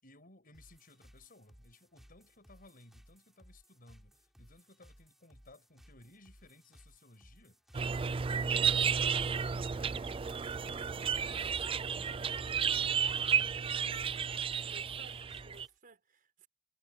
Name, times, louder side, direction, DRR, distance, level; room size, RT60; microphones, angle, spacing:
voice 1, 0.0-7.6 8.1-13.6, left 2 dB, 45° left, 7.3 m, -60 dB
sound 1, 0.5-15.8, equal, ahead, 7.7 m, -61 dB
sound 2, 7.7-15.7, right 7 dB, 25° right, 0.4 m, -32 dB
voice 2, 14.6-16.5, right 3 dB, 45° right, 5.7 m, -58 dB
head